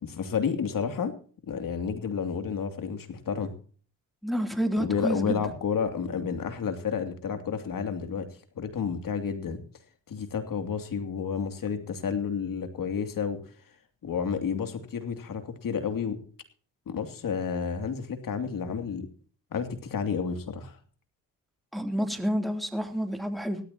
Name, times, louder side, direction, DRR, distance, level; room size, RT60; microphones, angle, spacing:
voice 1, 0.0-1.2 1.5-3.5 4.8-8.3 8.5-9.6 10.1-13.4 14.0-16.2 16.9-19.1 19.5-20.8, left 6 dB, 60° left, 7 dB, 2.8 m, -31 dB
voice 2, 4.2-5.4 21.7-23.6, equal, ahead, 4 dB, 3.1 m, -29 dB
17.5 x 14.0 x 2.9 m, 0.43 s
supercardioid pair, 60°, 37 cm